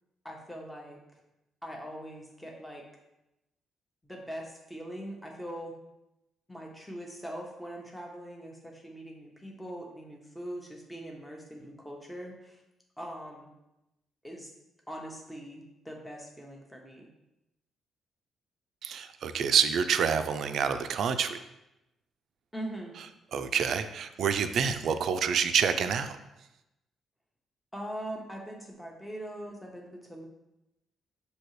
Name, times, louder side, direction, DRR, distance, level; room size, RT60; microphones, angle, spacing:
voice 1, 0.2-1.0 1.6-2.8 4.0-5.8 6.5-12.6 13.0-13.5 14.2-14.5 14.9-17.1 22.5-23.0 27.7-30.3, equal, 5° left, -1 dB, 0.8 m, -42 dB
voice 2, 18.8-21.4 23.3-26.2, right 7 dB, 65° right, 9 dB, 0.3 m, -27 dB
6.0 x 2.8 x 3.1 m, 0.91 s
cardioid pair, 90°, 0 cm